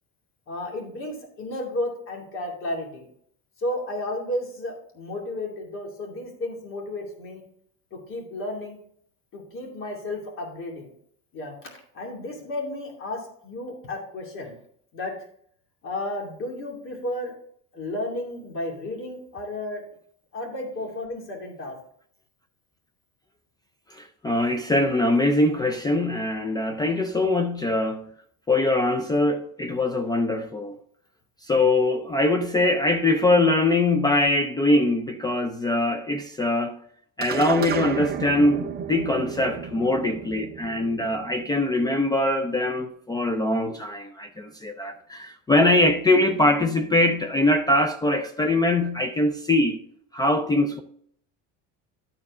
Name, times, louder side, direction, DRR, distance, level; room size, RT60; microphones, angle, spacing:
voice 1, 0.5-3.1 3.6-7.4 7.9-8.8 9.3-10.9 11.3-14.6 14.9-15.1 15.8-17.3 17.7-19.8 20.3-21.8, left 1 dB, 40° left, 2.6 m, -33 dB
voice 2, 23.9-28.1 28.5-30.8 31.5-36.8 37.2-49.8 50.1-50.8, left 2 dB, 10° left, 0.3 m, -22 dB
sound 1, 37.2-41.8, right 8 dB, 30° right, 0.7 m, -33 dB
12.0 x 4.7 x 3.6 m
cardioid pair, 150°, 34 cm